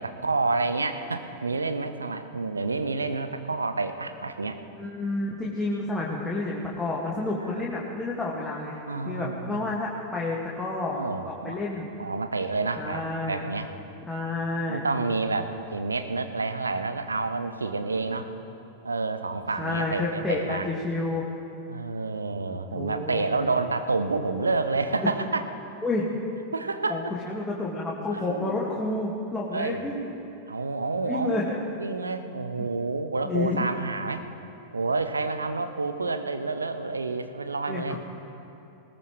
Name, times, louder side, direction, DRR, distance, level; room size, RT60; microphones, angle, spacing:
voice 1, 0.0-4.6 7.5-7.6 8.9-9.7 10.9-11.6 12.0-13.7 14.7-18.3 18.8-20.7 21.7-25.4 26.5-27.1 28.1-28.6 29.5-29.8 30.5-31.4 31.8-34.2 34.7-38.0, right 3 dB, 75° right, 9 dB, 0.9 m, -29 dB
voice 2, 4.8-11.9 12.8-13.5 14.1-14.9 19.6-21.3 22.7-23.2 25.8-26.1 26.9-30.1 31.0-31.6 32.6-32.7 33.2-33.7 37.7-38.0, left 2 dB, 10° left, -5 dB, 2.1 m, -30 dB
20.0 x 19.5 x 3.3 m, 2.8 s
figure-of-eight pair, 90°, 0 cm